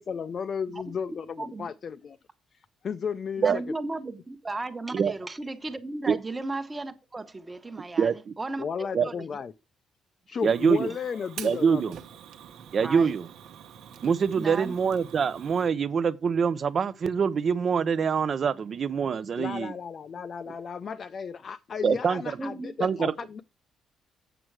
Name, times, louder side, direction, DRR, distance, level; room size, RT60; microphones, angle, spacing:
voice 1, 0.0-2.2 2.5-3.6 8.6-9.5 10.3-11.8 19.4-23.4, left 6 dB, 40° left, 0.5 m, -34 dB
voice 2, 1.4-1.7 3.4-9.3 12.8-13.2 14.3-14.7 22.4-22.7, right 2 dB, 15° right, 1.0 m, -35 dB
voice 3, 10.4-10.9 11.4-12.0 12.7-13.3 14.0-19.7 21.8-22.2 22.8-23.1, right 6 dB, 40° right, 0.6 m, -24 dB
Fire, 10.4-15.7, right 9 dB, 70° right, 1.0 m, -46 dB
7.9 x 7.5 x 4.7 m
cardioid pair, 145°, 0 cm